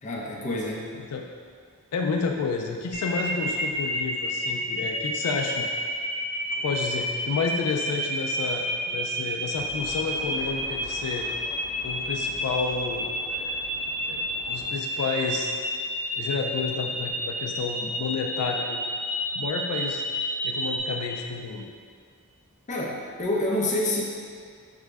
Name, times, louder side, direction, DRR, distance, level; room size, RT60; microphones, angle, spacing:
voice 1, 0.0-0.9 22.7-24.0, left 1 dB, 35° left, -4 dB, 0.6 m, -27 dB
voice 2, 0.9-1.3 1.9-5.7 6.5-11.3 11.8-13.6 14.1-14.2 14.5-15.5 16.2-18.8 19.3-20.0 20.4-21.7, left 5 dB, 85° left, 2 dB, 0.4 m, -30 dB
sound 1, 2.9-20.8, equal, 65° right, 1.5 m, -30 dB
sound 2, 9.5-14.7, equal, 45° right, 1.2 m, -45 dB
5.9 x 2.1 x 3.4 m, 2.1 s
head